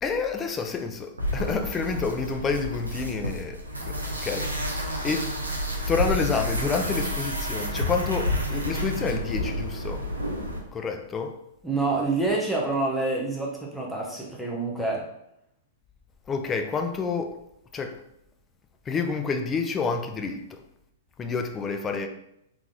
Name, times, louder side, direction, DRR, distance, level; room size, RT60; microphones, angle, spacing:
voice 1, 0.0-3.6 3.9-4.0 4.2-5.3 5.9-10.1 10.7-11.3 16.3-17.4 17.7-17.9 18.9-20.6 21.2-22.1, left 5 dB, 20° left, 5 dB, 0.5 m, -29 dB
sound 1, 1.2-10.6, equal, 85° right, 0.8 m, -30 dB
voice 2, 11.6-15.0, right 3 dB, ahead, -3 dB, 0.8 m, -27 dB
3.7 x 3.0 x 3.7 m, 0.79 s
figure-of-eight pair, 105°, 0 cm